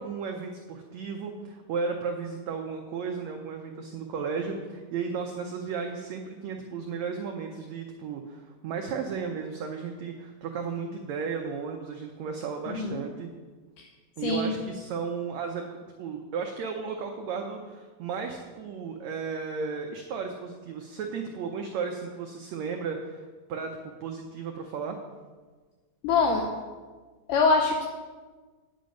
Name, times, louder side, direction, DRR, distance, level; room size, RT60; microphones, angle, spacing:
voice 1, 0.0-13.3 14.2-15.7 16.0-23.2 23.5-25.0, right 5 dB, 90° right, 3 dB, 1.5 m, -34 dB
voice 2, 12.7-13.0 13.8-13.9 14.2-14.6 26.0-26.5 27.3-27.8, left 4 dB, 75° left, 2 dB, 2.1 m, -24 dB
9.3 x 9.1 x 5.3 m, 1.4 s
omnidirectional pair, 4.2 m